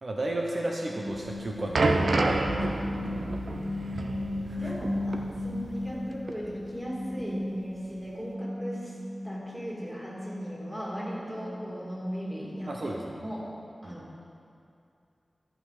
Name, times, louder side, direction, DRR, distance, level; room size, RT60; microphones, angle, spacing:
voice 1, 0.0-2.9 4.4-4.7 12.7-13.2 13.8-14.0, right 1 dB, 65° right, -1 dB, 0.8 m, -33 dB
sound 1, 0.8-6.1 6.4-12.7, left 1 dB, 30° right, 1.6 m, -36 dB
sound 2, 1.2-6.0 6.3-6.5 7.2-7.3, right 3 dB, 85° right, 0.5 m, -30 dB
voice 2, 4.6-9.0 9.2-12.9 13.2-13.5 13.8-14.1, equal, 5° right, -5 dB, 2.6 m, -38 dB
13.5 x 5.5 x 4.9 m, 2.6 s
wide cardioid pair, 60°, 0 cm